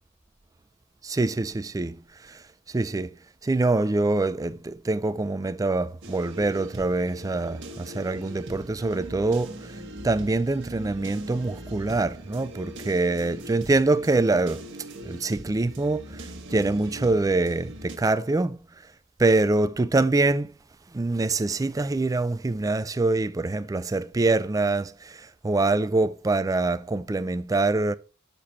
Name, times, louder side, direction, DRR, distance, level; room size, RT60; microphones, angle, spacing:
voice 1, 1.0-3.1 3.4-9.8 10.0-14.6 15.0-18.6 19.2-20.5 20.9-27.9, right 2 dB, 15° right, 0.4 m, -25 dB
sound 1, 6.0-18.0, right 1 dB, 60° right, 1.2 m, -41 dB
6.7 x 5.8 x 4.0 m
head